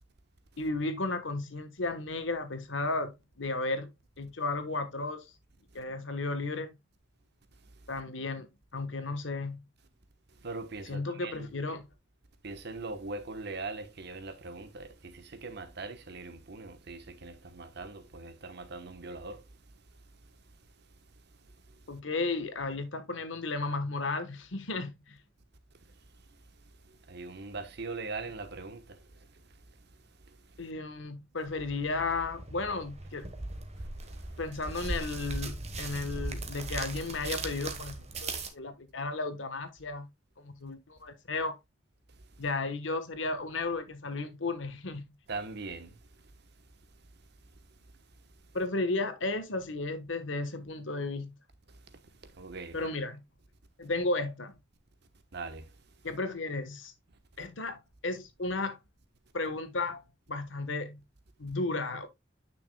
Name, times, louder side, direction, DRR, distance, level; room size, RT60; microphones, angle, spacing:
voice 1, 0.6-3.1 3.4-3.9 4.2-5.3 5.7-6.7 7.9-9.6 10.9-11.8 21.9-25.2 30.6-33.4 34.4-40.1 40.4-41.6 42.4-45.1 48.5-51.3 52.7-53.2 53.8-54.6 56.0-56.9 57.4-58.8 59.3-60.0 60.3-61.0 61.4-62.1, left 3 dB, 75° left, 1.3 m, -34 dB
voice 2, 10.4-11.5 12.4-19.4 27.1-29.0 45.3-45.9 52.4-52.9 55.3-55.7, right 3 dB, 60° right, 1.1 m, -41 dB
sound 1, 31.5-38.5, right 2 dB, 35° right, 1.2 m, -39 dB
9.6 x 6.0 x 2.2 m
head